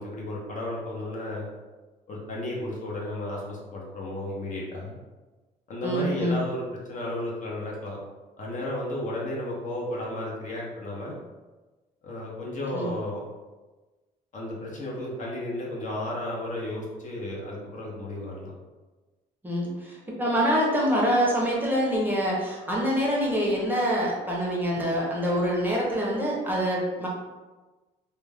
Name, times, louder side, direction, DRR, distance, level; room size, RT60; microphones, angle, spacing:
voice 1, 0.0-1.5 2.1-4.9 5.7-8.0 8.4-11.1 12.0-13.2 14.3-18.5, left 1 dB, 45° left, -3 dB, 0.7 m, -33 dB
voice 2, 5.8-6.4 12.7-12.9 19.4-19.7 20.2-27.1, equal, 10° right, -4 dB, 0.7 m, -25 dB
2.3 x 2.2 x 3.3 m, 1.2 s
cardioid pair, 110°, 17 cm